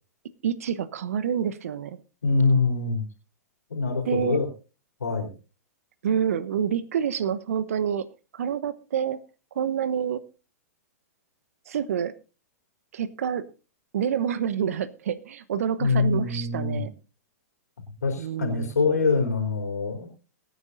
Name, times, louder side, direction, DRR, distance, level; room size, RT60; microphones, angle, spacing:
voice 1, 0.4-2.0 4.1-4.4 6.0-8.1 8.3-9.2 9.5-10.2 11.7-12.2 12.9-13.5 13.9-16.9 18.2-18.7, right 8 dB, 65° right, 15 dB, 1.1 m, -27 dB
voice 2, 2.2-3.1 3.7-4.5 5.0-5.3 15.8-16.9 18.0-20.1, left 4 dB, 75° left, 2 dB, 3.5 m, -24 dB
23.0 x 9.4 x 2.6 m, 0.33 s
figure-of-eight pair, 105°, 9 cm